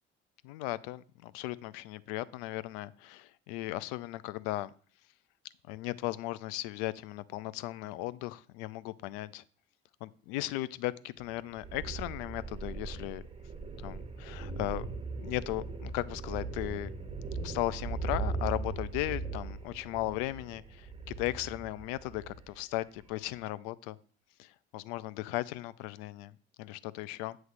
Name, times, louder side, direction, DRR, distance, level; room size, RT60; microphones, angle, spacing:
voice 1, 0.4-4.7 5.7-9.4 10.0-13.2 13.8-14.9 15.2-16.9 17.4-24.0 24.4-27.4, left 17 dB, 70° left, 18 dB, 0.5 m, -37 dB
sound 1, 11.2-22.6 23.0-23.1, right 3 dB, 20° right, 1.0 m, -39 dB
7.9 x 3.1 x 6.2 m, 0.43 s
hypercardioid pair, 55°, 32 cm